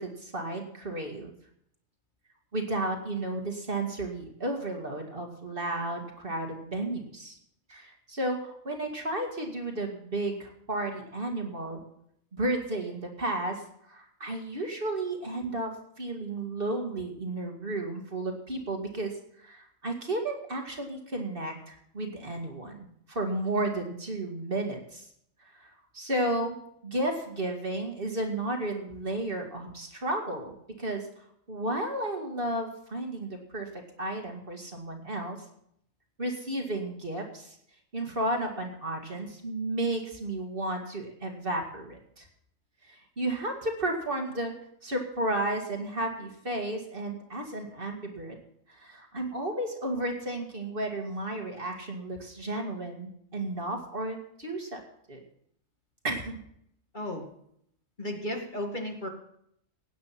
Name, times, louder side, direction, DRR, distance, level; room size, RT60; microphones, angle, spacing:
voice 1, 0.0-1.4 2.5-7.4 7.7-11.8 12.3-25.1 25.4-26.6 26.8-31.1 31.5-35.5 36.2-37.6 37.9-42.3 42.8-44.5 44.8-48.4 48.7-54.8 55.1-55.2 56.0-56.4, right 1 dB, 40° right, 2 dB, 2.2 m, -33 dB
voice 2, 56.9-57.3 58.0-59.1, left 1 dB, 35° left, 2 dB, 2.2 m, -34 dB
16.5 x 9.5 x 5.8 m, 0.71 s
omnidirectional pair, 1.4 m